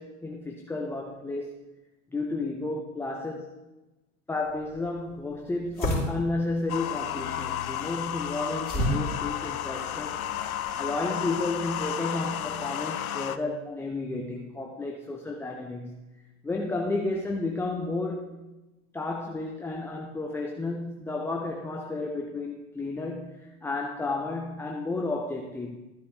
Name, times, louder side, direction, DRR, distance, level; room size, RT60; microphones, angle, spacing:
voice 1, 0.0-1.7 2.1-3.6 4.3-18.3 18.9-25.8, left 2 dB, 5° left, 1 dB, 0.5 m, -32 dB
sound 1, 4.5-10.8, equal, 20° left, 3.1 m, -34 dB
sound 2, 6.7-13.4, left 11 dB, 85° left, 0.6 m, -32 dB
13.5 x 9.3 x 3.3 m, 1.1 s
hypercardioid pair, 95°, 42 cm